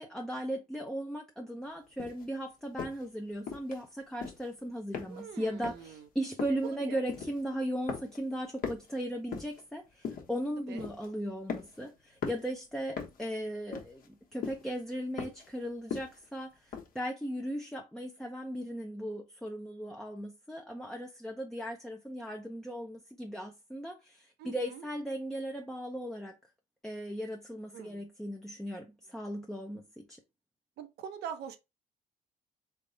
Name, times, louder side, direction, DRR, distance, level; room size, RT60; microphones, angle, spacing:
voice 1, 0.0-26.3 26.8-30.2, equal, 5° left, 0.6 m, -37 dB
sound 1, 2.0-2.2 2.8-3.0 3.5-3.8 4.1-4.5 4.9-5.4 5.6-5.9 6.4-6.7 7.1-7.5 7.9-8.3 8.6-9.6 10.0-10.4 10.8-11.1 11.5-11.9 12.2-12.5 13.0-13.3 13.7-14.1 14.4-14.7 15.2-15.5 15.9-16.3 16.7-16.9, left 6 dB, 55° left, 1.2 m, -39 dB
voice 2, 5.1-6.1 6.6-7.0 10.7-10.8 24.4-24.9 27.7-28.0 30.8-31.6, right 8 dB, 75° right, 0.8 m, -43 dB
3.5 x 3.2 x 3.9 m
cardioid pair, 110°, 17 cm